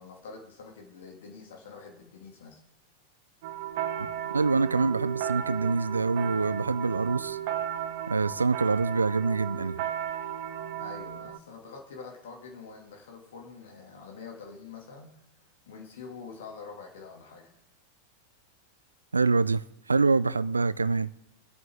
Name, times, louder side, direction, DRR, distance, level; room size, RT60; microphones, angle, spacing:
voice 1, 0.0-2.6 10.8-15.1 15.7-17.5, left 5 dB, 60° left, 2.1 m, -45 dB
sound 1, 3.4-11.4, right 10 dB, 50° right, 1.0 m, -34 dB
voice 2, 4.3-7.4 8.1-9.8 19.1-21.1, right 4 dB, 80° right, 0.4 m, -25 dB
25.0 x 8.6 x 3.5 m
figure-of-eight pair, 90°, 0 cm